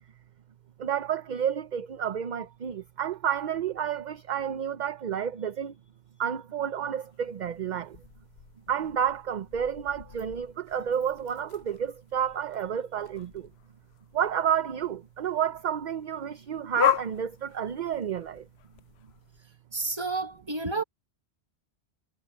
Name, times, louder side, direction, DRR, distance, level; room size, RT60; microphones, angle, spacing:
voice 1, 0.8-5.7 6.2-8.0 8.7-13.5 14.1-18.5, right 8 dB, 50° right, 0.7 m, -30 dB
sound 1, 7.0-19.4, left 10 dB, 75° left, 0.8 m, -37 dB
voice 2, 19.7-20.8, right 3 dB, 25° right, 1.4 m, -30 dB
omnidirectional pair, 1.1 m